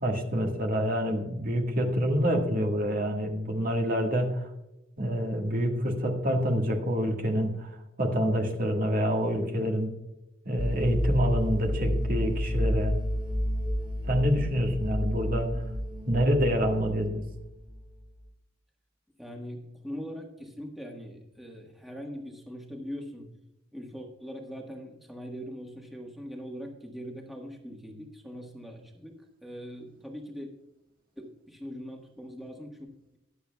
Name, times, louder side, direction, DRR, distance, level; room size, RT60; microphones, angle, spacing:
voice 1, 0.0-4.4 5.0-7.7 8.0-9.9 10.4-13.0 14.1-15.5 16.1-17.2, equal, 45° right, 2 dB, 1.7 m, -27 dB
sound 1, 10.6-18.0, equal, 25° right, 2.7 m, -30 dB
voice 2, 19.2-23.3 23.7-30.5 31.2-33.2, equal, ahead, 1 dB, 1.4 m, -41 dB
21.0 x 7.2 x 2.3 m, 0.92 s
head